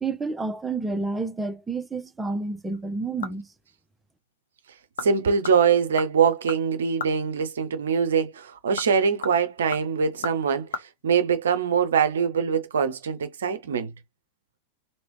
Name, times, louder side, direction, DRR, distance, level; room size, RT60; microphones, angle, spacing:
voice 1, 0.0-3.5, right 3 dB, 10° right, 0.6 m, -29 dB
sound 1, 2.7-3.6 4.0-4.1 4.7-5.1 5.4-7.2 8.5-10.8 11.1-11.2, left 5 dB, 65° left, 0.6 m, -36 dB
voice 2, 5.0-13.9, right 6 dB, 65° right, 0.6 m, -23 dB
3.0 x 2.8 x 3.1 m
figure-of-eight pair, 90°, 0 cm